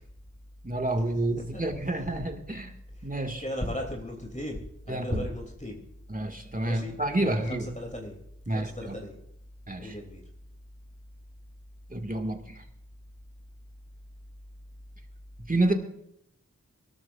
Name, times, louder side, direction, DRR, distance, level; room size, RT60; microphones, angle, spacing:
voice 1, 0.6-2.7 3.0-3.4 4.9-5.2 6.1-7.7 8.5-8.9 9.7-10.0 11.9-12.6 15.4-15.7, right 2 dB, 25° right, 5 dB, 2.1 m, -29 dB
voice 2, 3.4-5.9 6.6-7.0 7.2-8.2 8.5-9.2 9.8-10.2, left 1 dB, 25° left, 1 dB, 3.0 m, -36 dB
22.5 x 13.0 x 2.6 m, 0.78 s
wide cardioid pair, 55°, 31 cm